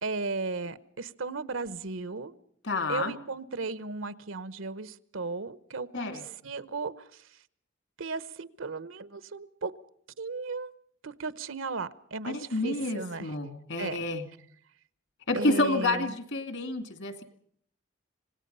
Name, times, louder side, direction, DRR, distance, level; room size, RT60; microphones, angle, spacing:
voice 1, 0.0-2.3 2.9-6.2 6.4-7.2 8.0-9.7 10.2-10.7 11.0-12.4 12.6-13.3 13.8-14.0 15.3-16.1, right 3 dB, 85° right, 15 dB, 0.9 m, -35 dB
voice 2, 2.6-3.1 5.9-6.2 12.2-14.3 15.3-17.2, left 2 dB, 70° left, 8 dB, 2.5 m, -29 dB
26.5 x 18.5 x 5.5 m, 0.66 s
head